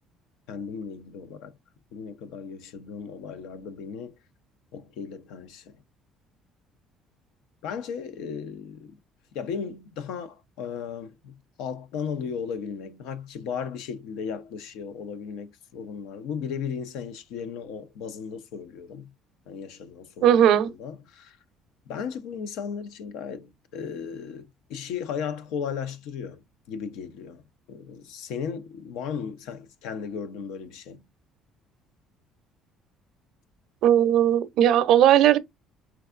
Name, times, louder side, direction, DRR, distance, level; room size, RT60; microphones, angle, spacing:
voice 1, 0.5-1.6 1.9-4.2 4.7-5.8 7.6-9.0 9.3-19.1 19.5-21.4 21.9-31.1, left 7 dB, 80° left, 0.6 m, -36 dB
voice 2, 20.2-20.7 33.8-35.4, right 10 dB, 65° right, 0.5 m, -18 dB
4.6 x 3.4 x 2.4 m
cardioid pair, 135°, 0 cm